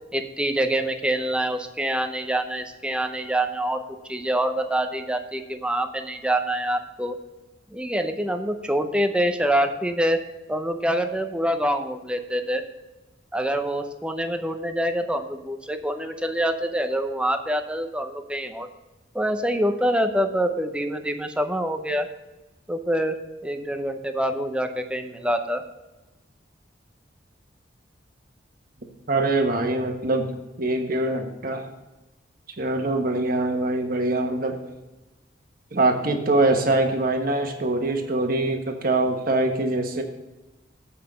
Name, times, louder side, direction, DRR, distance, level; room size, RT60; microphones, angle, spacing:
voice 1, 0.1-3.8 4.1-7.2 7.7-10.2 10.5-12.6 13.3-18.7 19.1-22.1 22.7-25.6, right 1 dB, 5° right, 7 dB, 0.6 m, -25 dB
voice 2, 29.1-30.3 30.6-31.7 32.6-34.6 35.7-40.0, right 2 dB, 50° right, 4 dB, 1.3 m, -23 dB
8.2 x 5.6 x 6.6 m, 1.1 s
head